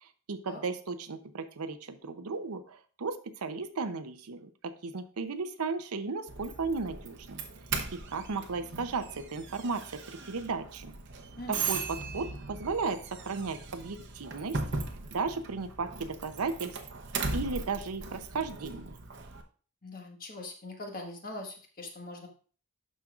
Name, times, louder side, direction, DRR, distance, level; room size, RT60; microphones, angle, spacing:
voice 1, 0.0-7.4 7.9-10.9 11.5-14.6 15.1-16.8 17.3-19.0, right 4 dB, 85° right, 9 dB, 0.7 m, -35 dB
Doorbell, 6.3-19.4, right 4 dB, 55° right, 0.8 m, -38 dB
voice 2, 11.4-11.7 19.8-22.3, left 2 dB, 40° left, 2 dB, 1.4 m, -42 dB
12.0 x 5.2 x 2.4 m, 0.40 s
head